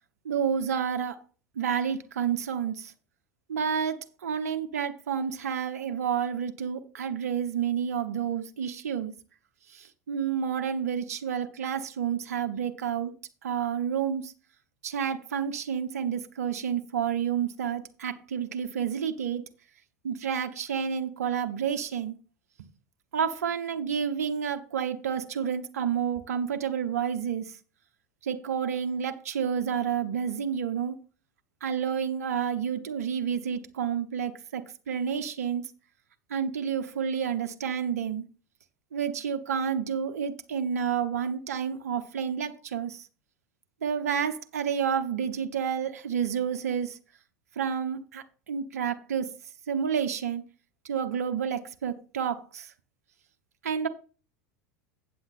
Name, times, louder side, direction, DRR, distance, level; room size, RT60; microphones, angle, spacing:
voice 1, 0.2-1.2 1.6-2.9 3.5-9.1 9.7-13.1 13.4-14.3 14.8-19.4 20.0-22.2 23.1-27.6 28.2-31.0 31.6-35.7 36.3-38.2 38.9-43.1 43.8-47.0 47.6-49.3 49.7-50.4 50.8-52.7 53.6-53.9, right 7 dB, 75° right, 1.0 m, -30 dB
8.4 x 7.7 x 4.2 m
figure-of-eight pair, 80°, 8 cm